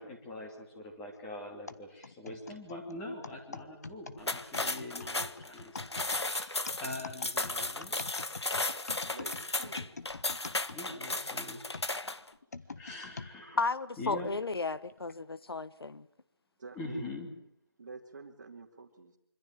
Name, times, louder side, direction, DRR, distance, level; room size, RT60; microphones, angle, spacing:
voice 1, 0.0-5.7 6.0-7.9 10.7-11.6 12.8-13.6 14.0-14.3 16.7-17.3, left 2 dB, 5° left, 1 dB, 2.7 m, -43 dB
sound 1, 1.7-11.2 11.7-13.3 13.9-14.0 14.9-15.2, left 4 dB, 40° left, 1.4 m, -45 dB
sound 2, 4.2-12.3, left 2 dB, 85° left, 1.5 m, -35 dB
voice 2, 9.0-10.0 11.6-11.8 12.6-12.9 13.3-13.9 14.2-14.3 16.6-17.1 17.8-19.2, right 4 dB, 30° right, -5 dB, 2.6 m, -49 dB
voice 3, 13.6-16.1, left 3 dB, 65° left, 16 dB, 1.4 m, -33 dB
26.0 x 25.5 x 7.8 m, 0.76 s
figure-of-eight pair, 170°, 13 cm